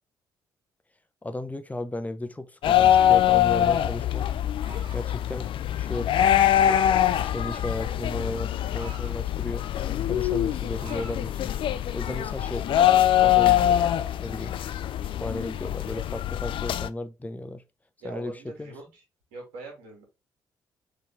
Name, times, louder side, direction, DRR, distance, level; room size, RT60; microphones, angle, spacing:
voice 1, 1.2-4.3 4.9-5.5 5.8-6.8 7.2-9.7 10.1-11.5 11.9-13.9 14.2-14.6 15.2-17.6 18.0-18.3 18.6-18.7, left 1 dB, 15° left, 0.7 m, -35 dB
sound 1, 2.6-16.9, left 11 dB, 55° left, 0.4 m, -23 dB
sound 2, 4.6-5.2 6.2-6.9 7.8-9.1 9.6-9.9 10.2-11.2, right 3 dB, 50° right, 1.3 m, -47 dB
voice 2, 18.0-19.0 19.3-20.0, right 2 dB, 70° right, 1.8 m, -42 dB
4.1 x 3.3 x 3.3 m
hypercardioid pair, 45°, 11 cm